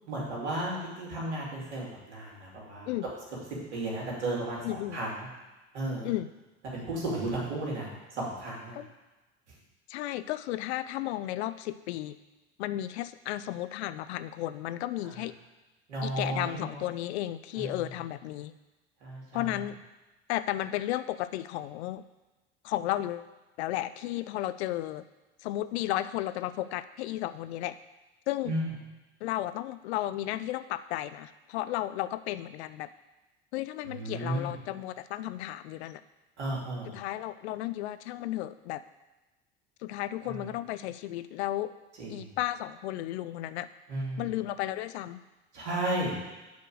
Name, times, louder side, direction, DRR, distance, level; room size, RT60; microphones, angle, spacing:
voice 1, 0.1-2.9 3.7-5.3 5.7-6.1 6.7-8.8 15.9-16.8 17.5-17.8 19.0-19.6 28.4-28.7 33.8-34.5 36.4-36.9 40.2-40.5 42.0-42.4 43.9-44.3 45.5-46.2, right 1 dB, 85° right, -4 dB, 2.6 m, -34 dB
voice 2, 4.6-5.0 6.0-6.3 8.7-8.9 9.9-12.2 12.6-15.3 16.0-18.5 19.3-19.8 20.3-22.0 22.6-25.0 25.4-27.8 28.3-28.5 29.2-32.9 33.5-36.0 36.9-38.8 39.8-41.7 42.1-43.7 44.2-45.2, left 14 dB, 75° left, 14 dB, 0.5 m, -33 dB
6.9 x 4.4 x 6.3 m, 1.1 s
hypercardioid pair, 70°, 33 cm